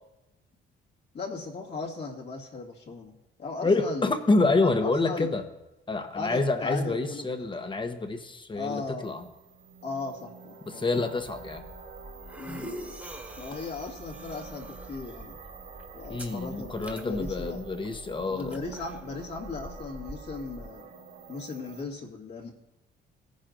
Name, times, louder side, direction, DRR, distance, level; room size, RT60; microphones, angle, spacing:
voice 1, 1.1-3.1 3.4-4.1 4.6-5.3 6.1-7.3 8.5-9.2 9.8-10.9 12.4-13.0 13.4-15.4 15.9-17.6 18.3-20.8 21.3-22.5, left 4 dB, 60° left, -3 dB, 2.0 m, -37 dB
voice 2, 3.6-5.4 5.9-9.3 10.7-11.6 16.1-18.6, left 3 dB, 25° left, 7 dB, 1.0 m, -27 dB
sound 1, 9.0-21.8, right 5 dB, 70° right, 2.9 m, -48 dB
sound 2, 11.2-20.7, right 1 dB, 10° right, 1.6 m, -44 dB
17.5 x 10.5 x 2.6 m, 0.97 s
cardioid pair, 90°, 20 cm